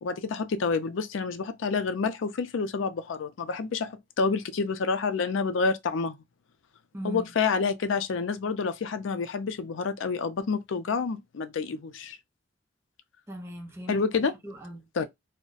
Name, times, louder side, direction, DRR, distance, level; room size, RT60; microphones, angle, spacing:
voice 1, 0.0-6.2 7.0-12.2 13.9-14.3 15.0-15.1, left 4 dB, 90° left, 0.4 m, -28 dB
voice 2, 6.9-7.3 13.3-14.0 14.4-15.0, right 1 dB, 15° right, 0.7 m, -39 dB
2.4 x 2.1 x 3.8 m
head